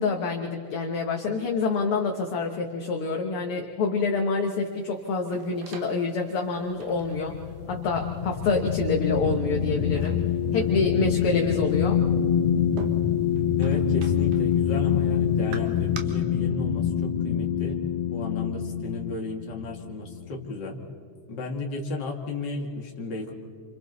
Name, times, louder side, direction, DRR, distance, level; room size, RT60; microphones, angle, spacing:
voice 1, 0.0-7.4 7.7-10.2 10.5-12.0, left 4 dB, 55° left, 2 dB, 1.8 m, -27 dB
sound 1, 4.6-16.0, right 6 dB, 85° right, 3.0 m, -48 dB
sound 2, 6.8-20.5, left 9 dB, 80° left, 2.2 m, -26 dB
voice 2, 13.6-17.8 18.1-20.8 21.3-23.3, left 2 dB, 40° left, 1 dB, 2.4 m, -34 dB
29.5 x 27.0 x 4.1 m, 2.5 s
omnidirectional pair, 3.5 m